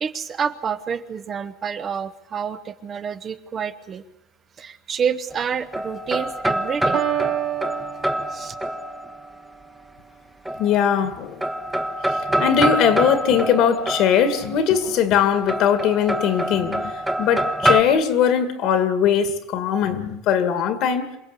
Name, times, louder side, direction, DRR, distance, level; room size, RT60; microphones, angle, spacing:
voice 1, 0.0-4.0 4.6-7.0 8.3-8.5, right 7 dB, 25° right, 0.9 m, -28 dB
sound 1, 5.3-9.3 10.5-11.1 11.4-14.6 15.5-17.8, right 1 dB, 5° right, 1.1 m, -25 dB
Piano, 6.9-8.9, right 13 dB, 55° right, 2.6 m, -27 dB
voice 2, 10.6-11.4 12.4-21.1, left 8 dB, 55° left, 2.1 m, -20 dB
27.0 x 17.5 x 8.3 m
cardioid pair, 165°, 0 cm